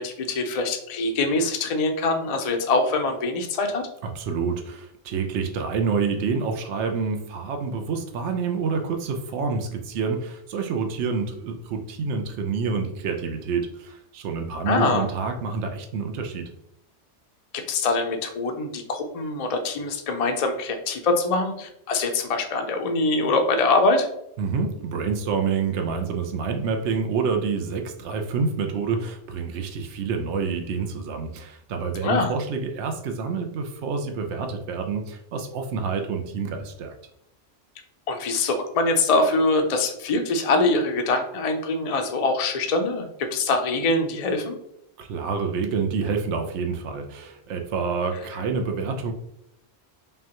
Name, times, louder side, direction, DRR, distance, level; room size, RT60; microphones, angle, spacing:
voice 1, 0.0-3.8 14.7-15.1 17.5-24.1 32.0-32.3 38.1-44.6, left 3 dB, 50° left, 4 dB, 0.5 m, -23 dB
voice 2, 4.0-16.5 24.4-36.9 45.0-49.1, right 5 dB, 85° right, 4 dB, 0.9 m, -28 dB
5.3 x 2.2 x 2.9 m, 0.76 s
omnidirectional pair, 1.2 m